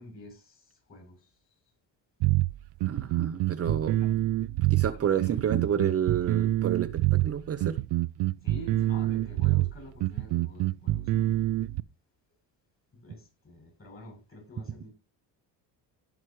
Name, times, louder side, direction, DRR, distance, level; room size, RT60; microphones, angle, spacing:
voice 1, 0.0-1.4 3.9-4.1 4.9-5.4 8.4-11.4 12.9-14.9, left 1 dB, 30° left, 7.8 m, -48 dB
sound 1, 2.2-11.8, right 16 dB, 65° right, 0.5 m, -26 dB
voice 2, 2.9-4.0 4.7-7.8, right 8 dB, 35° right, 0.7 m, -29 dB
17.0 x 6.0 x 3.1 m
cardioid pair, 135°, 44 cm